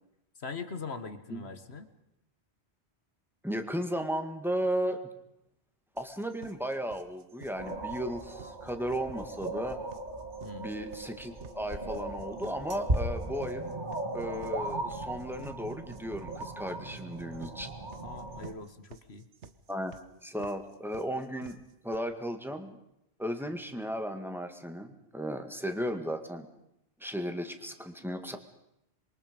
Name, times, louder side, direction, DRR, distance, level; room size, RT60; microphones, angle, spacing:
voice 1, 0.4-1.9 10.4-10.7 18.0-19.2, left 4 dB, 65° left, 9 dB, 1.9 m, -41 dB
voice 2, 3.4-5.0 6.0-9.8 10.6-13.7 14.1-17.7 19.7-19.9 20.2-21.6 21.8-22.8 23.2-26.5 27.0-28.4, equal, ahead, 6 dB, 1.9 m, -35 dB
sound 1, 6.0-22.0, right 6 dB, 85° right, 1.4 m, -52 dB
sound 2, 7.5-18.5, right 2 dB, 45° right, 2.1 m, -37 dB
27.0 x 23.0 x 5.3 m, 0.82 s
omnidirectional pair, 1.1 m